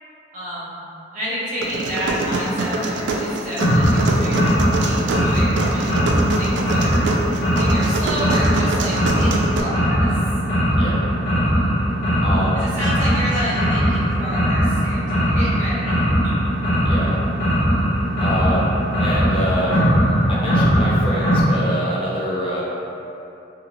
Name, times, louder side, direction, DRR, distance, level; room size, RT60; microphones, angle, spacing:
voice 1, 0.3-0.8 1.1-6.1 6.4-7.0 7.5-10.1 12.5-16.0 16.2-16.3, equal, 40° right, -9 dB, 0.9 m, -29 dB
sound 1, 1.6-9.6, right 2 dB, 75° right, 0.3 m, -25 dB
sound 2, 3.6-21.4, equal, 65° left, 0.8 m, -19 dB
voice 2, 12.2-12.6 16.8-17.2 18.2-18.7 19.0-19.8 20.3-22.6, equal, 30° left, -6 dB, 0.4 m, -26 dB
2.7 x 2.4 x 2.9 m, 2.8 s
head